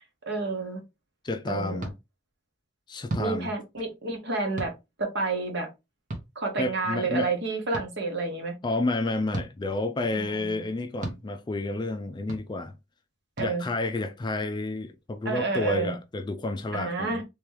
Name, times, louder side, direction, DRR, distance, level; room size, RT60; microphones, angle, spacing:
voice 1, 0.3-0.8 1.5-1.8 3.2-4.7 5.0-5.7 6.3-8.5 10.1-10.7 13.4-13.6 15.2-16.0 16.7-17.2, right 3 dB, 60° right, 1.4 m, -29 dB
voice 2, 1.2-1.9 2.9-3.5 6.6-7.3 8.6-12.7 13.4-17.2, left 2 dB, 20° left, 0.3 m, -30 dB
sound 1, 1.8-1.9 3.1-3.3 4.6-4.7 6.1-6.3 7.7-7.9 9.3-9.5 11.0-11.2 12.3-12.4 13.4-13.5, right 2 dB, 40° right, 1.0 m, -34 dB
3.4 x 3.0 x 3.1 m
head